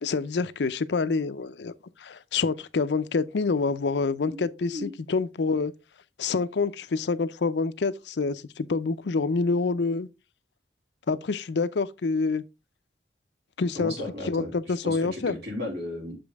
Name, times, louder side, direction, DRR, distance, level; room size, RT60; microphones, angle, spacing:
voice 1, 0.0-1.7 2.0-5.7 6.2-10.1 11.1-12.4 13.6-13.9 14.3-15.3, left 4 dB, 70° left, 0.5 m, -27 dB
voice 2, 4.3-4.9 13.7-16.2, left 2 dB, 65° right, 3.1 m, -35 dB
7.3 x 5.2 x 3.4 m
head